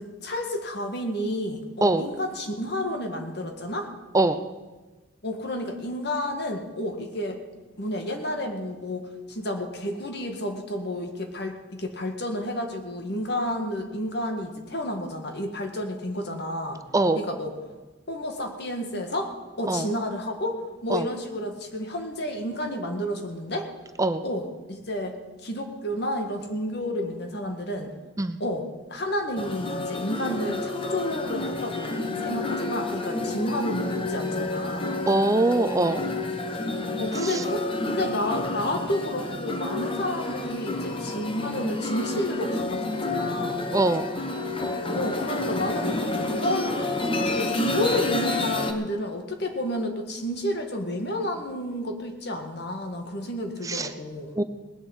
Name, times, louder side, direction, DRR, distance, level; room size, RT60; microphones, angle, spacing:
voice 1, 0.0-3.9 5.2-7.4 7.8-16.8 17.1-17.5 18.1-19.3 19.6-20.6 20.8-23.7 24.2-25.2 25.4-27.9 28.4-35.0 37.0-43.7 44.9-46.0 46.2-54.4, left 1 dB, 60° left, 4 dB, 1.9 m, -31 dB
Bali Gamelan Orchestra rehearsal, 29.4-48.7, left 2 dB, 30° left, 1.1 m, -29 dB
voice 2, 35.1-36.1 43.7-44.1 53.6-53.9 54.4-54.5, right 2 dB, 15° right, 10 dB, 0.5 m, -22 dB
19.0 x 7.6 x 8.1 m, 1.2 s
head